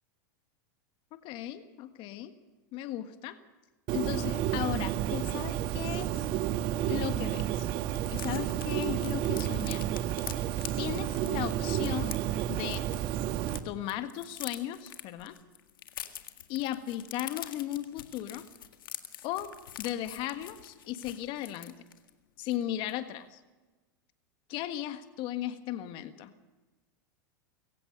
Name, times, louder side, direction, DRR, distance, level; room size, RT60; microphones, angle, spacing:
voice 1, 1.1-2.3 2.7-3.4 3.9-6.2 6.8-7.7 8.1-9.9 10.8-12.8 13.6-15.4 16.5-18.4 19.2-19.5 19.8-21.7 22.4-23.4 24.5-26.3, left 13 dB, 50° left, 10 dB, 1.6 m, -36 dB
Bird, 3.9-13.6, right 12 dB, 50° right, 1.3 m, -31 dB
sound 1, 6.9-7.0 7.3-7.4 7.6-13.6 13.9-22.1 22.5-22.6 22.9-23.1, left 11 dB, 85° left, 1.8 m, -45 dB
25.5 x 15.5 x 6.6 m, 1.2 s
hypercardioid pair, 105°, 11 cm